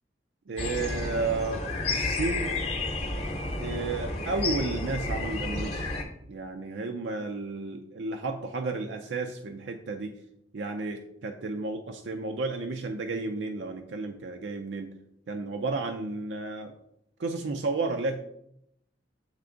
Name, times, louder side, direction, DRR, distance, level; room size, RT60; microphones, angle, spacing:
voice 1, 0.5-2.6 3.6-5.9 6.3-10.1 10.5-14.9 15.3-16.7 17.2-18.2, right 3 dB, 85° right, 5 dB, 0.5 m, -32 dB
sound 1, 0.6-6.0, left 2 dB, 35° left, 0.8 m, -31 dB
7.9 x 3.4 x 3.7 m, 0.76 s
head